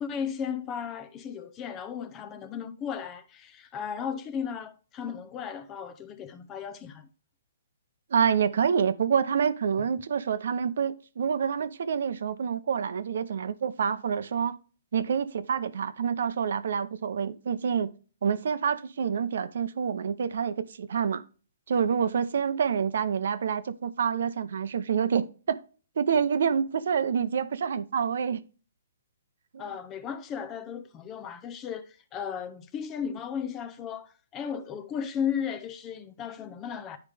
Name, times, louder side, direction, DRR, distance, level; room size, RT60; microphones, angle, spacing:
voice 1, 0.0-7.1 29.6-37.0, left 7 dB, 20° left, 0.6 m, -35 dB
voice 2, 8.1-14.6 14.9-17.9 18.2-21.2 21.7-25.6 26.0-28.4 29.5-29.6, right 7 dB, 65° right, 0.7 m, -27 dB
10.5 x 4.9 x 3.3 m
hypercardioid pair, 160°, 0 cm